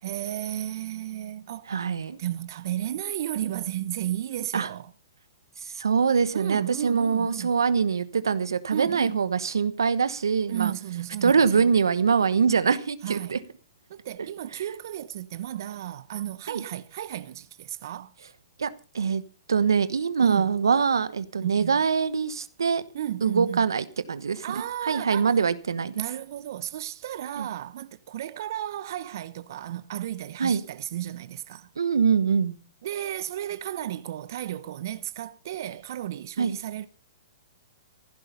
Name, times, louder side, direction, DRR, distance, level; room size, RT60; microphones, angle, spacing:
voice 1, 0.0-1.7 2.2-4.9 6.3-7.5 8.7-9.2 10.5-11.7 13.0-13.4 13.9-18.1 20.2-20.5 21.4-21.8 22.9-23.6 24.4-25.4 25.9-31.7 32.8-36.9, right 12 dB, 60° right, 0.9 m, -33 dB
voice 2, 1.7-2.2 4.5-4.7 5.6-10.7 11.2-13.4 16.5-16.6 18.6-19.2 19.5-22.8 23.2-24.4 24.8-26.0 27.4-27.5 30.4-30.6 31.8-32.6 36.4-36.6, right 6 dB, 90° right, 1.1 m, -24 dB
15.5 x 11.5 x 5.4 m
hypercardioid pair, 135°, 2 cm